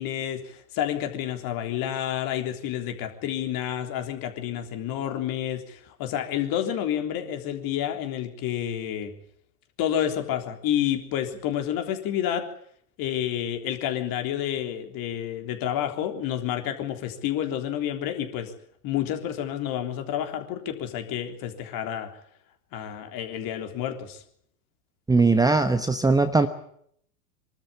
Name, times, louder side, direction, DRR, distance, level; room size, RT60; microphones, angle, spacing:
voice 1, 0.0-9.1 9.8-12.4 13.0-18.5 18.8-22.1 22.7-24.2, left 10 dB, 45° left, 5 dB, 3.7 m, -29 dB
voice 2, 25.1-26.5, right 3 dB, 10° right, 10 dB, 1.1 m, -20 dB
24.0 x 13.0 x 10.0 m, 0.68 s
hypercardioid pair, 100°, 48 cm